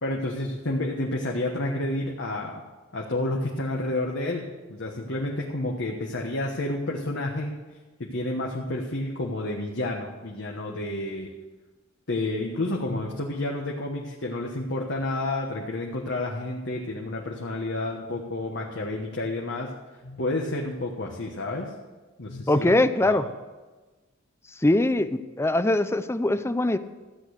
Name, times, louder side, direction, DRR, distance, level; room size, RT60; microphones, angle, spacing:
voice 1, 0.0-2.6 2.9-7.5 8.0-11.3 12.1-19.7 20.0-21.7 22.2-23.2, left 2 dB, 60° left, -1 dB, 1.3 m, -30 dB
voice 2, 22.5-23.2 24.6-26.8, left 1 dB, 15° left, 12 dB, 0.5 m, -22 dB
14.0 x 8.6 x 6.4 m, 1.2 s
head